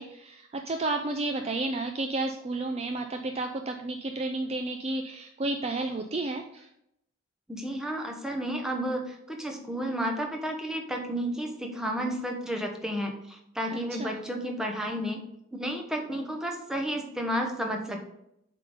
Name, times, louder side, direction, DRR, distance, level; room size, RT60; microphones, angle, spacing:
voice 1, 0.0-6.7 13.7-14.2, right 2 dB, 30° right, 4 dB, 0.4 m, -32 dB
voice 2, 7.5-15.2 15.5-18.0, equal, 5° right, 1 dB, 1.0 m, -32 dB
7.6 x 3.8 x 5.0 m, 0.78 s
head